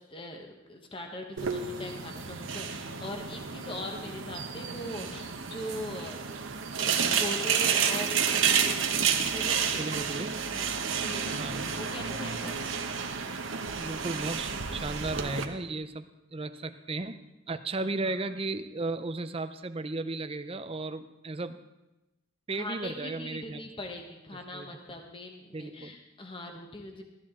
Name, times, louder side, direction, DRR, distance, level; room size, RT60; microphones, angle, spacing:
voice 1, 0.0-6.2 6.7-9.9 10.5-12.6 17.8-18.2 22.6-27.0, left 1 dB, 25° left, 3 dB, 1.2 m, -41 dB
sound 1, 1.4-15.4, right 7 dB, 75° right, 1.0 m, -30 dB
voice 2, 9.8-10.4 11.3-11.7 13.8-16.1 16.3-17.2 17.5-21.6 22.5-23.6 24.5-24.8 25.5-25.9, right 2 dB, 30° right, 10 dB, 0.6 m, -35 dB
14.0 x 13.5 x 3.7 m, 0.99 s
head